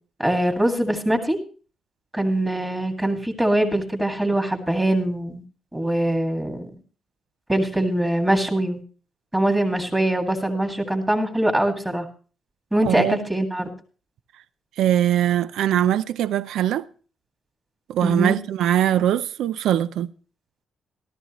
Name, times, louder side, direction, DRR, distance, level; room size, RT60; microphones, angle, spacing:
voice 1, 0.2-1.4 2.1-5.4 5.7-6.7 7.5-8.8 9.3-12.1 12.7-13.7 18.0-18.4, right 1 dB, 10° right, 2.0 m, -22 dB
voice 2, 12.8-13.2 14.8-16.9 17.9-20.1, right 11 dB, 85° right, 0.5 m, -21 dB
13.5 x 13.5 x 3.0 m
cardioid pair, 140°, 0 cm